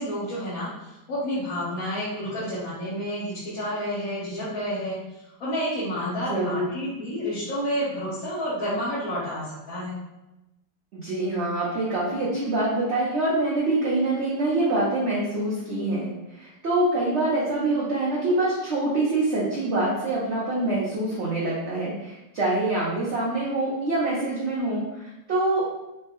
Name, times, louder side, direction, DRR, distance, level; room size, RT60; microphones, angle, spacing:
voice 1, 0.0-5.0 5.4-10.0, equal, 55° left, -10 dB, 1.3 m, -30 dB
voice 2, 6.3-6.7 10.9-25.8, right 2 dB, 60° right, -6 dB, 0.7 m, -25 dB
5.0 x 2.1 x 2.9 m, 0.96 s
omnidirectional pair, 2.1 m